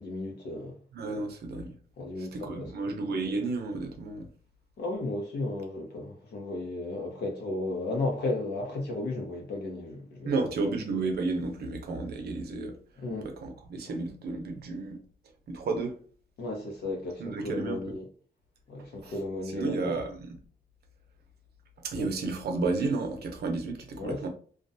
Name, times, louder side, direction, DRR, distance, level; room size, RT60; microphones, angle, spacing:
voice 1, 0.0-0.8 2.0-2.7 4.8-10.7 13.0-13.3 16.4-18.1 18.7-20.0 21.9-22.1 24.0-24.3, left 2 dB, 80° left, 0.8 m, -34 dB
voice 2, 0.9-1.7 2.2-4.3 10.2-12.8 13.2-15.0 15.5-16.0 17.2-18.0 18.8-19.1 19.5-20.4 21.8-24.3, right 3 dB, 70° right, 0.6 m, -32 dB
2.4 x 2.2 x 2.7 m
wide cardioid pair, 125°, 17 cm